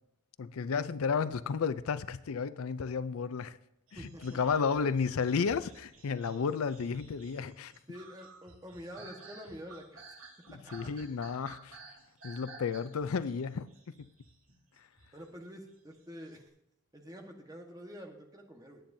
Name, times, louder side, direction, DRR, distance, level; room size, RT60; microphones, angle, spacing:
voice 1, 0.4-3.6 3.9-7.7 10.5-11.8 12.2-13.7, left 5 dB, 85° left, 0.5 m, -32 dB
voice 2, 3.9-4.4 7.9-10.0 10.5-10.9 15.1-16.4 16.9-18.8, equal, 15° right, 1.3 m, -47 dB
sound 1, 3.9-15.2 15.9-16.3, right 3 dB, 80° right, 2.6 m, -53 dB
19.0 x 8.8 x 2.7 m
head